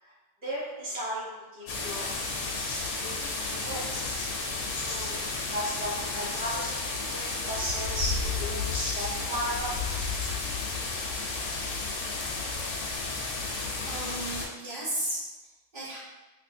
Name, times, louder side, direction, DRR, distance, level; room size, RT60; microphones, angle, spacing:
voice 1, 0.4-2.1 2.4-2.6 3.0-3.8 4.8-5.1 5.5-9.7, equal, 10° right, -9 dB, 0.7 m, -35 dB
sound 1, 1.7-14.5, left 3 dB, 75° left, 1.1 m, -32 dB
voice 2, 13.3-13.6 13.8-16.0, right 1 dB, 40° right, -6 dB, 1.0 m, -36 dB
3.3 x 3.1 x 2.6 m, 1.1 s
omnidirectional pair, 1.6 m